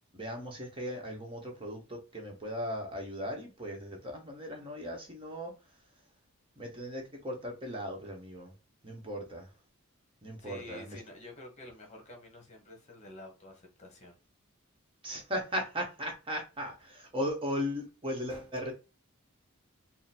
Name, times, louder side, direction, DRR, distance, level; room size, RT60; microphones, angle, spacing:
voice 1, 0.1-5.5 6.6-8.5 8.8-9.5 10.2-11.0 15.0-18.7, equal, 25° right, 1.1 m, -37 dB
voice 2, 10.4-14.1, left 1 dB, 30° left, 1.1 m, -49 dB
3.8 x 2.0 x 4.2 m
head